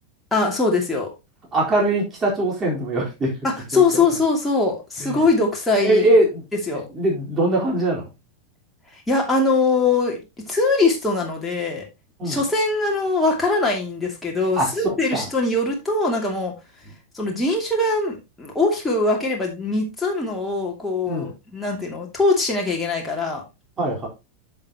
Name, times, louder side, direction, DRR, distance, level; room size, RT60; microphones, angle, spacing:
voice 1, 0.3-1.1 3.4-6.1 6.7-6.8 8.9-11.8 12.2-16.5 17.1-23.4, left 3 dB, 10° left, -1 dB, 2.6 m, -22 dB
voice 2, 1.5-3.3 3.7-4.0 5.0-5.3 5.8-6.4 6.7-8.1 12.2-12.4 14.6-15.3 21.1-21.3 23.8-24.1, right 1 dB, 20° right, -2 dB, 4.2 m, -22 dB
10.5 x 6.8 x 2.9 m, 0.25 s
figure-of-eight pair, 90°, 0 cm